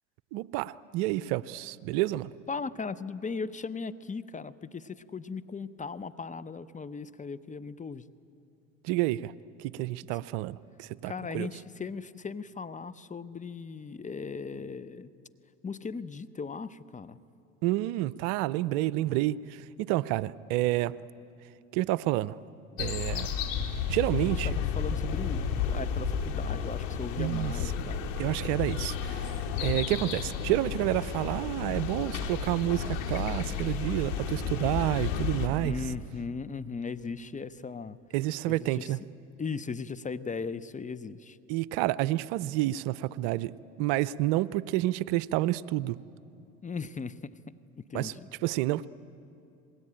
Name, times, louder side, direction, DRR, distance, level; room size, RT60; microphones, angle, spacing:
voice 1, 0.3-2.3 8.8-9.3 9.6-11.5 17.6-20.9 21.7-22.4 22.8-23.3 23.9-24.5 27.2-27.5 28.2-29.3 29.6-35.8 38.1-39.0 41.5-46.0 47.9-48.1 48.4-48.9, right 16 dB, 65° right, 18 dB, 0.7 m, -29 dB
voice 2, 2.5-8.0 10.1-10.2 11.0-15.1 15.6-17.2 24.2-28.0 35.6-38.0 38.5-39.0 39.4-41.4 46.6-47.2 47.9-48.3, left 5 dB, 20° left, 18 dB, 0.8 m, -38 dB
sound 1, 22.8-35.5, left 6 dB, 75° left, 2.9 m, -32 dB
27.5 x 20.5 x 8.8 m, 2.6 s
hypercardioid pair, 80°, 39 cm